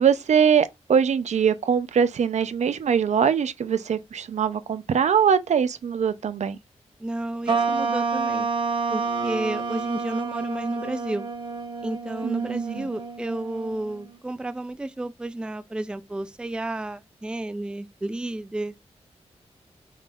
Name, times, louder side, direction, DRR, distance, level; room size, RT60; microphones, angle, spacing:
voice 1, 0.0-6.6 12.2-12.9, right 7 dB, 80° right, 0.6 m, -22 dB
voice 2, 7.0-8.5 8.9-11.3 11.8-18.7, right 1 dB, 10° right, 0.3 m, -31 dB
sound 1, 7.5-14.1, right 4 dB, 45° right, 1.0 m, -29 dB
5.4 x 3.8 x 2.4 m
wide cardioid pair, 140°, 12 cm